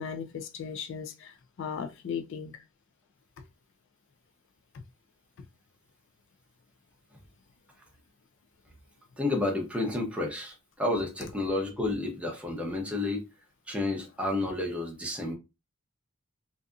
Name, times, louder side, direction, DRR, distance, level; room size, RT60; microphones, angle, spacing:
voice 1, 0.0-2.6, left 6 dB, 60° left, 0.3 m, -37 dB
voice 2, 9.2-13.2 13.7-15.3, left 2 dB, 5° right, 0.6 m, -30 dB
2.6 x 2.4 x 2.3 m
head